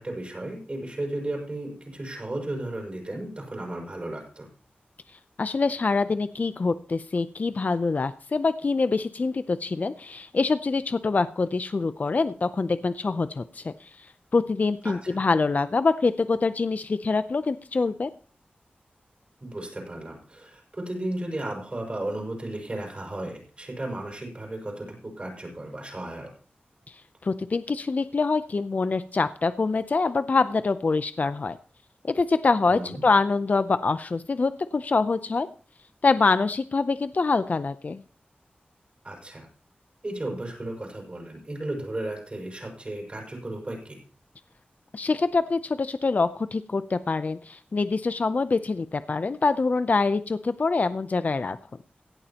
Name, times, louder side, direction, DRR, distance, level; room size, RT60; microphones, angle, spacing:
voice 1, 0.0-4.5 14.8-15.2 19.4-26.3 32.7-33.0 39.0-39.5 40.0-44.0, right 1 dB, 35° right, -1 dB, 5.4 m, -34 dB
voice 2, 5.4-14.1 14.3-18.1 27.2-31.6 32.0-35.5 36.0-38.0 44.9-51.6, left 4 dB, 50° left, 12 dB, 0.5 m, -25 dB
17.0 x 11.0 x 2.9 m, 0.39 s
wide cardioid pair, 105°, 4 cm